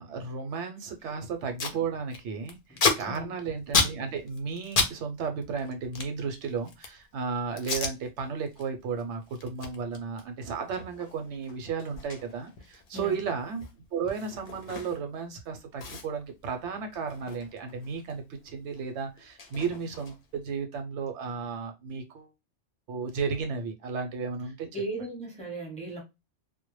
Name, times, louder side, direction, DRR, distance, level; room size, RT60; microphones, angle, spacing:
voice 1, 0.0-22.3 22.9-24.7, right 5 dB, 80° right, 0.9 m, -34 dB
Packing tape duct tape, 1.0-1.1 1.3-1.8 2.1-4.9 5.2-7.0 7.6-7.9 8.4-8.6 9.0-15.2 15.4-15.5 15.8-18.2 18.4-20.4, left 4 dB, 55° left, 0.6 m, -33 dB
voice 2, 2.7-3.3 12.9-13.2 24.7-26.0, right 2 dB, 5° left, 0.7 m, -37 dB
2.1 x 2.1 x 3.0 m
omnidirectional pair, 1.2 m